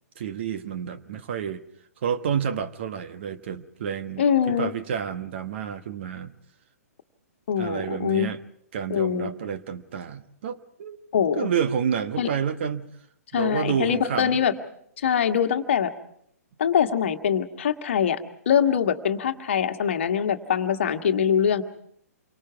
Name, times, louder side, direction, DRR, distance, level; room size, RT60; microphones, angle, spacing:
voice 1, 0.2-1.6 2.0-6.3 7.6-8.4 8.7-11.0 11.3-12.9 13.3-14.4, right 8 dB, 45° right, 1.2 m, -29 dB
voice 2, 4.2-4.7 7.5-8.3 8.9-9.3 11.1-11.5 12.2-12.3 13.3-14.5 15.0-15.9 16.6-18.2 18.4-21.6, left 8 dB, 50° left, 1.5 m, -23 dB
28.0 x 24.5 x 4.7 m
figure-of-eight pair, 120°, 9 cm